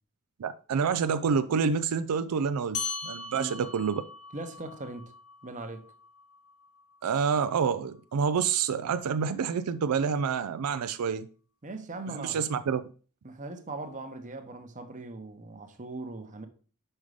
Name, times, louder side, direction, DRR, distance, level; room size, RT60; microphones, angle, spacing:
voice 1, 0.4-4.0 7.0-11.3 12.1-12.8, right 6 dB, 85° right, 0.4 m, -28 dB
sound 1, 2.7-7.6, left 5 dB, 90° left, 1.4 m, -40 dB
voice 2, 3.3-3.6 4.3-5.1 5.4-5.9 11.6-12.5 13.2-16.5, right 2 dB, 35° right, 0.9 m, -40 dB
5.5 x 5.0 x 4.8 m
head